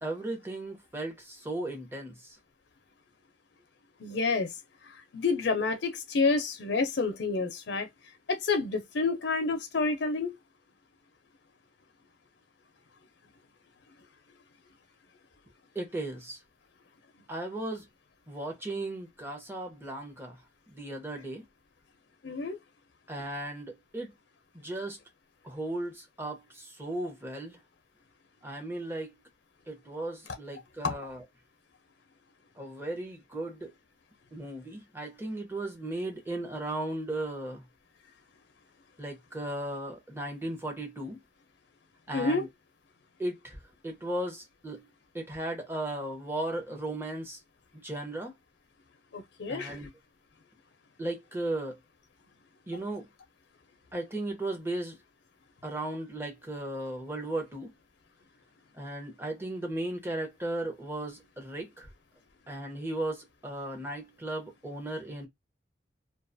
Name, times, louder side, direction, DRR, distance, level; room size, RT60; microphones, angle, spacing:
voice 1, 0.0-2.4 15.7-16.4 17.3-17.8 18.3-20.4 20.7-21.4 23.1-24.1 24.5-25.0 25.4-27.6 28.4-29.1 29.7-31.2 32.6-33.7 34.3-37.6 39.0-41.2 42.1-42.5 43.2-43.6 43.8-44.9 45.1-47.4 47.7-48.3 49.5-49.9 51.0-51.8 52.7-53.1 53.9-55.0 55.6-57.7 58.7-61.9 62.5-65.3, right 1 dB, 15° right, 0.7 m, -36 dB
voice 2, 4.0-4.5 5.1-7.9 8.3-10.3 22.2-22.6 30.8-30.9 42.1-42.5 49.1-49.7, left 4 dB, 65° left, 0.5 m, -28 dB
2.4 x 2.3 x 2.5 m
head